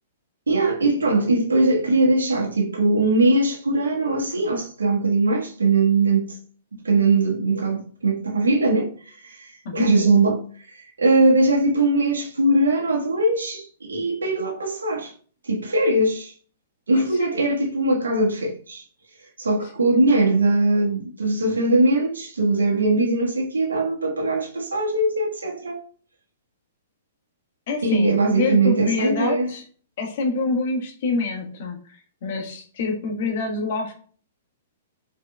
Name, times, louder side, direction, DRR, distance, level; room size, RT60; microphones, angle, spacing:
voice 1, 0.5-6.3 6.8-8.9 9.2-10.4 10.7-15.1 15.4-16.3 16.9-18.8 19.4-25.8 27.8-29.5, right 2 dB, 75° right, 1.3 m, -21 dB
voice 2, 16.9-17.4 27.7-29.6 30.0-33.9, left 3 dB, 50° left, 1.4 m, -26 dB
4.8 x 4.7 x 2.2 m
figure-of-eight pair, 110°, 0 cm